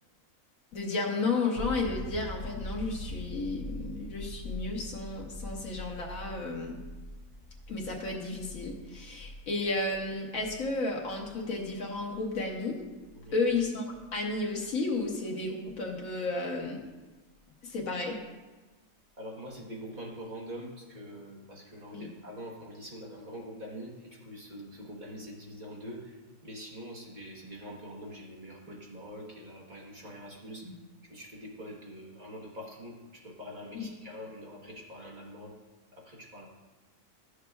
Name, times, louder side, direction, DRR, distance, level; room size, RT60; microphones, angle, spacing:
voice 1, 0.7-6.8 7.7-12.8 13.3-16.8 17.6-18.2 21.9-22.1 30.6-30.7 33.7-33.9, left 3 dB, 90° left, 1 dB, 1.6 m, -33 dB
sound 1, 1.5-15.1 17.8-17.9, left 1 dB, 60° left, 1.4 m, -43 dB
voice 2, 19.2-30.7 31.0-35.6 35.9-36.5, equal, 35° right, -2 dB, 1.3 m, -44 dB
12.0 x 6.5 x 2.3 m, 1.2 s
omnidirectional pair, 1.4 m